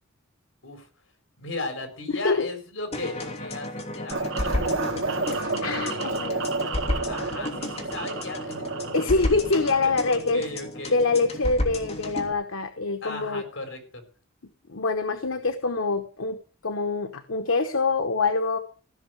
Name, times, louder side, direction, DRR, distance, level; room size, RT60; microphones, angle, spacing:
voice 1, 1.4-5.0 5.6-6.0 7.1-8.7 9.8-11.2 13.0-14.0, left 2 dB, 70° left, 5 dB, 4.7 m, -36 dB
sound 1, 2.9-12.3, left 1 dB, 30° left, 2.9 m, -33 dB
sound 2, 4.1-10.1, right 3 dB, 75° right, 1.8 m, -31 dB
voice 2, 5.3-6.4 8.9-10.4 10.9-13.4 14.7-18.6, left 3 dB, 85° left, 8 dB, 1.1 m, -25 dB
15.5 x 6.4 x 8.0 m, 0.40 s
head